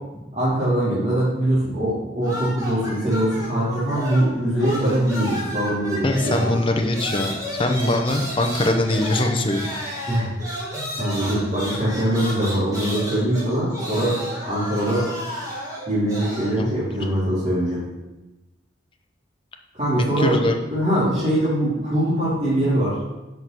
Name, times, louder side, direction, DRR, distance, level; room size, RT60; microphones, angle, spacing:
voice 1, 0.4-6.5 10.1-10.3 10.7-14.2 14.4-15.1 15.9-17.8 19.7-20.4 20.7-22.9, right 1 dB, 40° right, -12 dB, 2.9 m, -22 dB
sound 1, 2.2-4.3 4.6-16.5, equal, 20° right, 2.0 m, -32 dB
voice 2, 6.0-7.3 7.6-9.7 16.6-16.7 20.2-20.6, left 1 dB, 30° left, 4 dB, 0.8 m, -22 dB
6.1 x 5.7 x 5.9 m, 1.0 s
head